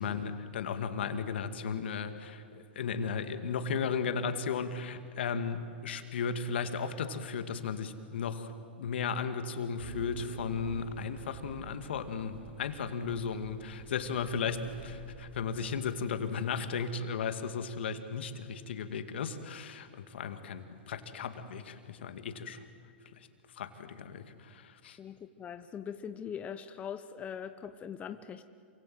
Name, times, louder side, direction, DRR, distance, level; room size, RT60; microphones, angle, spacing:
voice 1, 0.0-8.5 8.8-22.6 23.6-25.0, left 6 dB, 75° left, 8 dB, 2.2 m, -35 dB
sound 1, 9.8-15.7, right 4 dB, 80° right, 4.2 m, -47 dB
voice 2, 25.0-28.4, left 8 dB, 25° left, 9 dB, 1.0 m, -41 dB
27.5 x 25.0 x 7.8 m, 2.2 s
hypercardioid pair, 120°, 6 cm